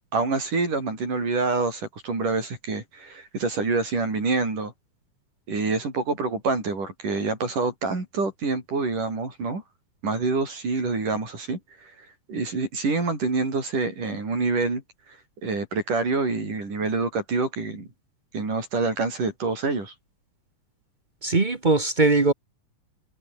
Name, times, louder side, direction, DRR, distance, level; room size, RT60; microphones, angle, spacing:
voice 1, 0.1-4.7 5.5-9.6 10.0-11.9 12.3-14.8 15.4-17.9 18.3-19.9, right 3 dB, 90° right, 9.2 m, -26 dB
voice 2, 21.2-22.3, right 3 dB, 55° right, 0.5 m, -20 dB
omnidirectional pair, 3.6 m